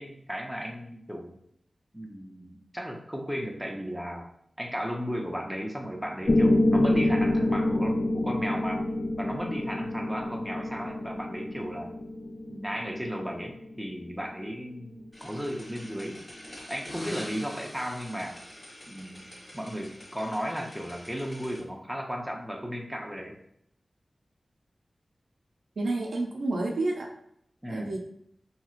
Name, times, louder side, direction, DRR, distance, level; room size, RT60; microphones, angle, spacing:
voice 1, 0.0-1.3 1.9-4.3 4.6-8.8 9.2-11.9 12.5-16.2 16.7-18.4 18.9-19.3 19.5-23.4 27.6-27.9, equal, 5° right, 1 dB, 0.7 m, -35 dB
Piano, 6.3-14.3, left 1 dB, 55° left, 0.4 m, -27 dB
sound 1, 15.1-21.6, equal, 40° left, 1.0 m, -45 dB
voice 2, 25.8-27.1 27.7-28.0, right 2 dB, 85° right, 0 dB, 0.4 m, -29 dB
2.8 x 2.8 x 2.4 m, 0.72 s
cardioid pair, 40°, 0 cm